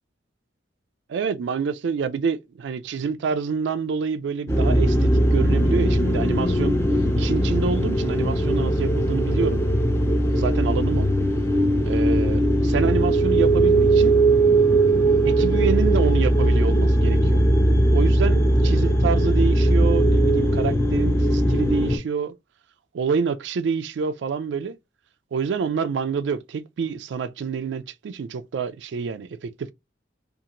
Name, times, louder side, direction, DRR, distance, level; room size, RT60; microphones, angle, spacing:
voice 1, 1.1-6.8 7.2-11.1 11.8-14.2 15.2-17.4 17.9-22.3 22.9-24.8 25.3-29.7, right 5 dB, 70° right, 0.3 m, -27 dB
sound 1, 4.5-22.0, right 1 dB, 15° left, 0.4 m, -19 dB
2.9 x 2.4 x 2.5 m
head